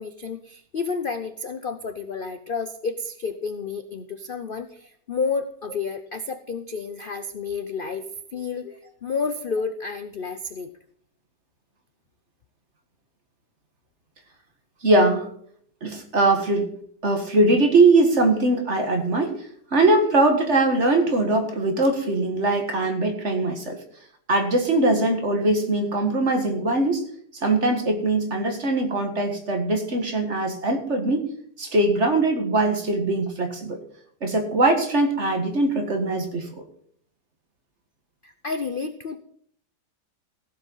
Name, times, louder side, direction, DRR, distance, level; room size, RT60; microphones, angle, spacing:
voice 1, 0.0-8.1 8.3-10.7 38.2-39.2, left 5 dB, 50° left, 9 dB, 0.6 m, -30 dB
voice 2, 14.8-15.3 15.8-16.7 17.0-19.3 19.7-23.8 24.3-27.0 27.4-31.3 31.6-33.8 34.2-36.5, right 2 dB, 40° right, 5 dB, 2.1 m, -21 dB
16.0 x 7.8 x 5.6 m, 0.62 s
omnidirectional pair, 1.8 m